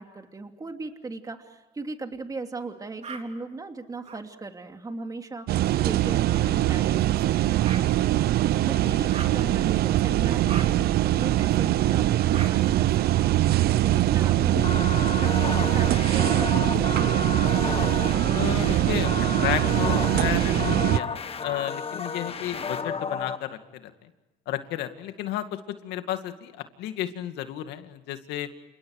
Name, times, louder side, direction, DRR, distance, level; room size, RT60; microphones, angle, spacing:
voice 1, 0.0-12.9 13.2-13.6 13.8-17.3, right 3 dB, 20° right, 5 dB, 2.8 m, -38 dB
sound 1, 3.0-3.2 4.0-4.2 6.3-6.4 7.6-7.8 9.1-9.4 10.5-10.7 12.3-12.5 14.0-14.8 15.8-16.7 17.6-18.4, right 5 dB, 40° right, 4.0 m, -41 dB
sound 2, 5.5-21.0, right 14 dB, 70° right, 0.8 m, -22 dB
sound 3, 14.6-23.4, left 5 dB, 35° left, 1.7 m, -32 dB
voice 2, 18.3-24.1 24.5-28.5, left 12 dB, 85° left, 8 dB, 2.3 m, -33 dB
30.0 x 28.0 x 4.9 m, 1.1 s
cardioid pair, 110°, 17 cm